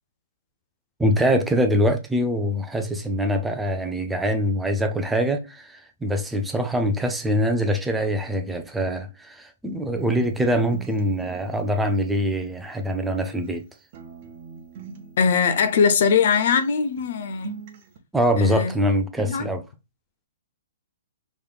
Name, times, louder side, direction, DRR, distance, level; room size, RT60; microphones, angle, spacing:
voice 1, 1.0-13.6 18.1-19.6, equal, 5° right, 0.5 m, -24 dB
sound 1, 10.0-13.6 13.9-16.7 17.0-18.0, right 6 dB, 45° right, 0.8 m, -44 dB
voice 2, 15.2-17.7 18.4-18.8 19.2-19.5, left 6 dB, 60° left, 0.5 m, -21 dB
3.2 x 3.0 x 2.2 m
hypercardioid pair, 130°, 0 cm